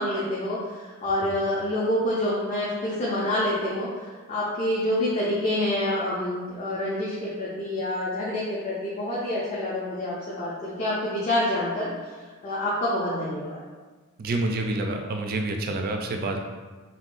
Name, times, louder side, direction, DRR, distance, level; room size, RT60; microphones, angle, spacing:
voice 1, 0.0-11.9 12.4-13.6, left 1 dB, 35° left, -7 dB, 0.5 m, -27 dB
voice 2, 14.2-16.4, right 2 dB, 45° right, 4 dB, 0.3 m, -28 dB
3.5 x 2.1 x 2.5 m, 1.3 s
head